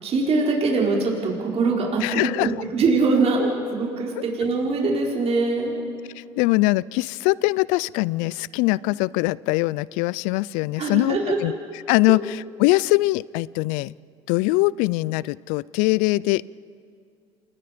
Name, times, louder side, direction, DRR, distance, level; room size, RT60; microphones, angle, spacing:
voice 1, 0.0-2.0 2.3-5.8 10.8-11.4, right 3 dB, 50° right, -2 dB, 4.7 m, -22 dB
voice 2, 2.0-2.6 6.2-11.5 11.9-13.9 14.3-16.5, left 21 dB, 80° left, 23 dB, 0.4 m, -22 dB
28.5 x 20.0 x 5.1 m, 2.4 s
supercardioid pair, 75°, 13 cm